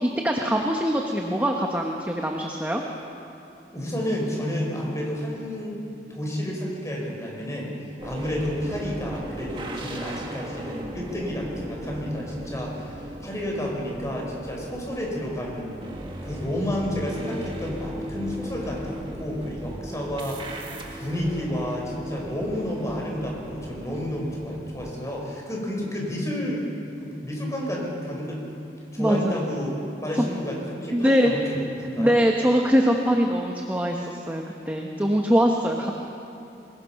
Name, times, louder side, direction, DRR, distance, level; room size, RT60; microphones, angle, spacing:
voice 1, 0.0-2.8 29.0-29.3 30.9-31.3 32.0-35.9, equal, 10° right, 1 dB, 1.2 m, -22 dB
voice 2, 3.7-5.8 6.1-7.7 8.0-15.7 16.2-26.7 27.0-28.4 28.9-29.7 30.0-32.1, equal, 15° left, -2 dB, 5.0 m, -30 dB
sound 1, 8.0-24.9, equal, 30° right, 1.9 m, -37 dB
25.0 x 21.0 x 5.9 m, 2.8 s
head